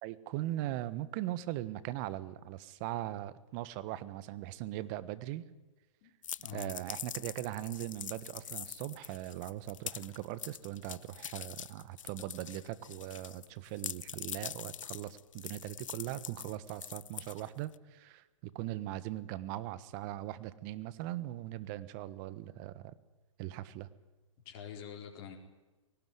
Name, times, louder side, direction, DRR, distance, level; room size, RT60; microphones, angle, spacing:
voice 1, 0.0-5.4 6.5-22.9 23.4-23.9, right 15 dB, 35° right, 16 dB, 1.3 m, -40 dB
sound 1, 6.2-13.5 13.8-17.7, left 9 dB, 75° left, 0.7 m, -44 dB
voice 2, 6.4-6.8 24.4-25.4, left 8 dB, 40° left, 1 dB, 4.4 m, -45 dB
21.0 x 18.5 x 9.5 m, 1.2 s
hypercardioid pair, 135°, 17 cm